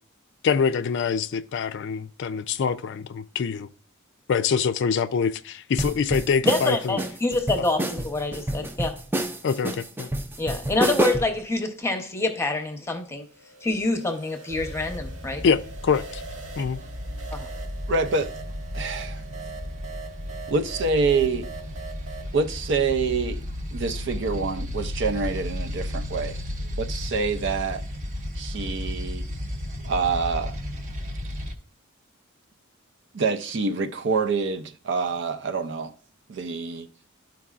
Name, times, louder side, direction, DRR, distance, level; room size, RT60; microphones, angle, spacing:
voice 1, 0.4-3.7 4.3-7.0 9.4-10.1 15.4-16.2 16.6-16.8, left 6 dB, 60° left, 0.4 m, -25 dB
sound 1, 5.8-11.4, right 1 dB, 10° right, 0.4 m, -28 dB
voice 2, 6.4-8.9 10.4-13.2 13.6-15.4 17.3-17.5, left 2 dB, 15° left, 0.8 m, -26 dB
sound 2, 13.2-22.3, right 5 dB, 80° right, 1.6 m, -42 dB
sound 3, 14.5-31.5, left 1 dB, 40° right, 0.8 m, -34 dB
voice 3, 17.9-18.3 18.7-19.2 20.5-21.5 22.3-23.4 23.7-26.4 26.8-27.8 28.4-29.2 29.8-30.6 33.1-35.9 36.3-36.9, right 4 dB, 60° right, 0.5 m, -26 dB
12.0 x 4.6 x 2.4 m
head